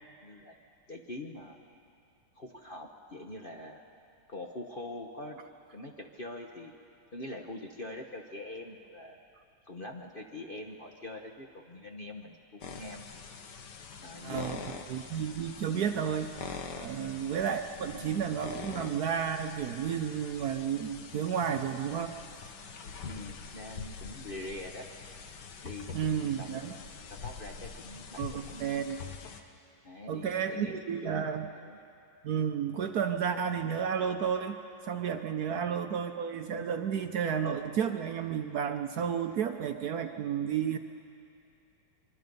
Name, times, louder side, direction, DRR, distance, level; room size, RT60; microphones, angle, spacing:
voice 1, 0.2-0.5 0.9-1.6 2.3-3.8 4.3-5.4 5.7-6.7 7.1-9.2 9.6-13.1 14.0-14.9 15.7-15.8 16.9-17.2 17.9-18.3 23.0-24.9 25.6-28.2 28.5-28.6 29.8-31.8 35.5-35.7, left 2 dB, 35° left, 2 dB, 0.9 m, -44 dB
sound 1, 12.6-29.4, left 5 dB, 65° left, 1.7 m, -44 dB
voice 2, 14.2-14.6 14.9-16.3 16.7-22.1 25.9-26.7 28.2-29.0 30.1-31.5 32.2-40.8, right 8 dB, 65° right, 6 dB, 1.1 m, -32 dB
25.0 x 24.0 x 5.4 m, 2.5 s
omnidirectional pair, 2.1 m